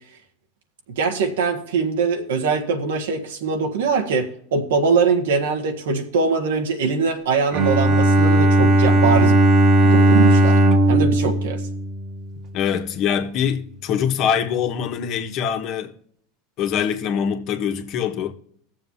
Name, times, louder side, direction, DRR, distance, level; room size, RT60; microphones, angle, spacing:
voice 1, 1.0-9.4 9.8-10.6 10.9-11.6, right 5 dB, 85° right, 1.6 m, -22 dB
Bowed string instrument, 7.5-12.5, right 1 dB, 45° right, 1.4 m, -16 dB
voice 2, 12.5-15.9 16.6-18.3, left 8 dB, 50° left, 1.5 m, -23 dB
18.5 x 7.2 x 2.8 m
supercardioid pair, 115°, 0 cm